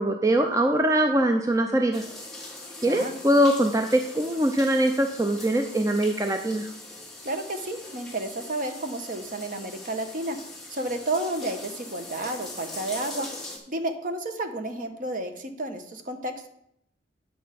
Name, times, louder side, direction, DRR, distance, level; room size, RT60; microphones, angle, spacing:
voice 1, 0.0-2.0 2.8-6.7, right 1 dB, 20° right, 5 dB, 0.5 m, -22 dB
sound 1, 1.9-13.6, left 2 dB, ahead, 1.6 m, -41 dB
voice 2, 2.8-3.1 7.2-10.4 10.7-13.3 13.7-16.5, right 2 dB, 45° right, 7 dB, 1.0 m, -31 dB
8.6 x 6.7 x 5.2 m, 0.75 s
head